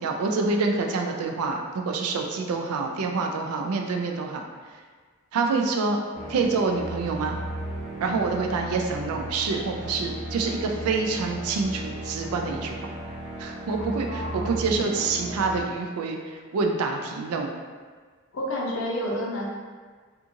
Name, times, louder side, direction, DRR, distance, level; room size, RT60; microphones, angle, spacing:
voice 1, 0.0-4.5 5.3-6.0 6.3-7.4 8.0-12.8 13.4-17.5, right 4 dB, 85° right, 2 dB, 0.4 m, -27 dB
sound 1, 6.1-15.6, right 1 dB, 5° left, 1.0 m, -35 dB
voice 2, 13.8-14.6 18.3-19.5, equal, 65° left, -2 dB, 0.5 m, -30 dB
2.7 x 2.4 x 2.5 m, 1.5 s
head